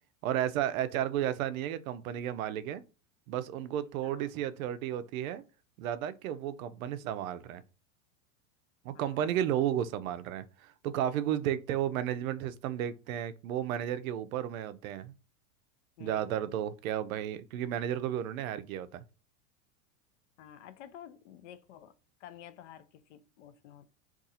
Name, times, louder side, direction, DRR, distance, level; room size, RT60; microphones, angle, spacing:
voice 1, 0.2-2.8 3.3-5.4 5.8-7.6 8.8-15.1 16.0-19.0, right 11 dB, 75° right, 0.5 m, -33 dB
voice 2, 4.0-4.4 8.9-9.5 16.0-16.6 20.4-21.9 22.2-23.9, left 9 dB, 60° left, 0.5 m, -51 dB
2.6 x 2.4 x 4.0 m
supercardioid pair, 165°, 42 cm